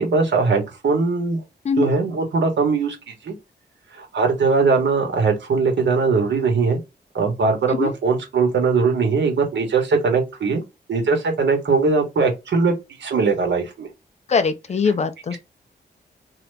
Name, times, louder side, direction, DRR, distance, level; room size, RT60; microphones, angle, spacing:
voice 1, 0.0-1.4 1.8-3.3 4.0-6.8 7.1-10.6 10.9-12.7 13.0-13.9 15.3-15.4, right 4 dB, 85° right, 1.3 m, -20 dB
voice 2, 14.3-15.4, left 5 dB, 40° left, 0.5 m, -21 dB
2.9 x 2.4 x 3.3 m
wide cardioid pair, 175°, 18 cm